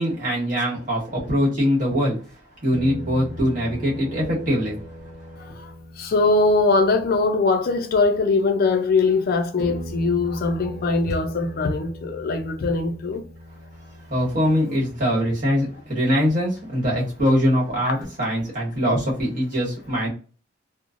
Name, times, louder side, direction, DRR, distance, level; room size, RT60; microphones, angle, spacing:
voice 1, 0.0-2.2 2.6-4.8 14.1-20.1, equal, 45° right, 1.3 m, -22 dB
sound 1, 1.9-2.0 2.7-7.8 9.0-9.1 9.6-17.0 18.0-18.1, equal, 5° left, 0.9 m, -39 dB
voice 2, 5.4-13.3 17.9-18.0, left 3 dB, 50° left, 0.4 m, -21 dB
3.0 x 2.0 x 2.5 m
head